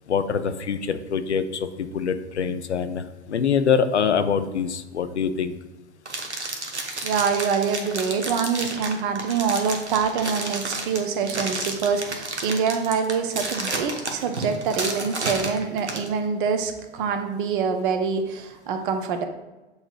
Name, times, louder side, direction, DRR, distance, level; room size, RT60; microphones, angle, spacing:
voice 1, 0.1-5.6, left 6 dB, 85° left, 10 dB, 0.5 m, -24 dB
sound 1, 6.0-16.1, right 2 dB, 90° right, 0.8 m, -31 dB
voice 2, 7.0-19.3, right 6 dB, 50° right, 6 dB, 0.7 m, -25 dB
7.9 x 2.9 x 2.3 m, 1.1 s
figure-of-eight pair, 90°, 33 cm